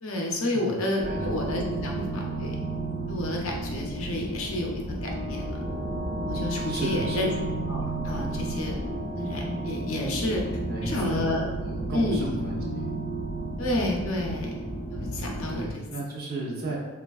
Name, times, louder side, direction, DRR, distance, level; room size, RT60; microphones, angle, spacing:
voice 1, 0.0-2.6 3.1-5.6 6.3-7.3 7.7-8.8 9.2-10.4 10.8-11.5 11.9-12.3 13.6-14.6 14.9-15.8, left 1 dB, 70° left, 0 dB, 0.6 m, -30 dB
voice 2, 0.5-1.4 6.7-7.4 10.7-12.9 14.9-15.2 15.5-16.8, right 2 dB, 45° right, -3 dB, 0.6 m, -35 dB
sound 1, 1.0-15.7, right 2 dB, 20° left, 1.0 m, -32 dB
3.2 x 2.4 x 2.3 m, 1.2 s
head